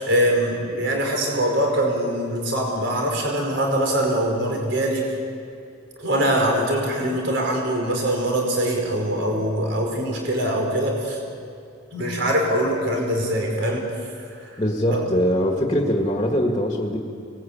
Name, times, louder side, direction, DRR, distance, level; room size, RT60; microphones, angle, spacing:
voice 1, 0.0-5.1 6.0-11.2 11.9-13.9 14.3-14.6 14.9-15.0, right 1 dB, 60° right, 0 dB, 4.9 m, -23 dB
voice 2, 14.6-17.0, equal, 20° left, 1 dB, 1.9 m, -22 dB
25.5 x 20.0 x 8.8 m, 2.4 s
head